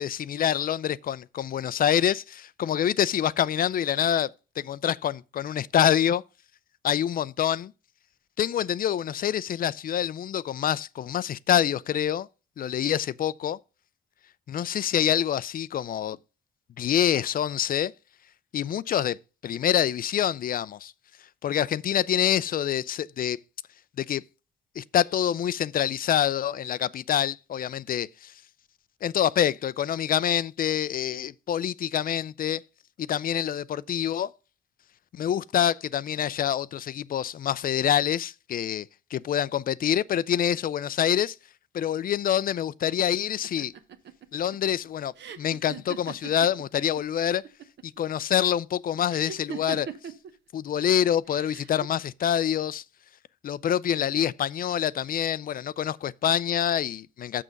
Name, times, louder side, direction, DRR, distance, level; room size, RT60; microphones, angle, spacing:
voice 1, 0.0-4.3 4.6-6.2 6.8-7.7 8.4-12.3 12.6-13.6 14.5-16.2 16.8-17.9 18.5-19.2 19.4-20.9 21.4-23.4 24.0-24.2 24.8-28.3 29.0-32.6 33.0-34.3 35.1-41.4 41.7-43.7 44.3-47.4 47.8-49.9 50.5-52.8 53.4-57.4, left 10 dB, 45° left, 0.4 m, -26 dB
sound 1, 43.4-47.0 47.3-48.0 49.1-50.3 51.3-51.9, right 8 dB, 65° right, 0.9 m, -40 dB
6.6 x 6.2 x 5.2 m
cardioid pair, 90°, 20 cm